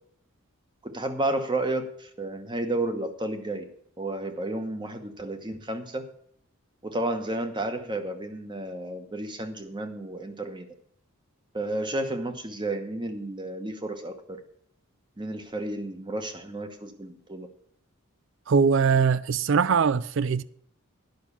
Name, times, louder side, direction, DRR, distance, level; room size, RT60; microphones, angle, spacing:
voice 1, 0.8-3.6 4.0-6.1 6.8-10.7 11.5-14.4 15.2-17.5, right 1 dB, 20° right, 1.1 m, -32 dB
voice 2, 18.5-20.4, right 5 dB, 60° right, 0.4 m, -22 dB
10.5 x 6.0 x 8.4 m
head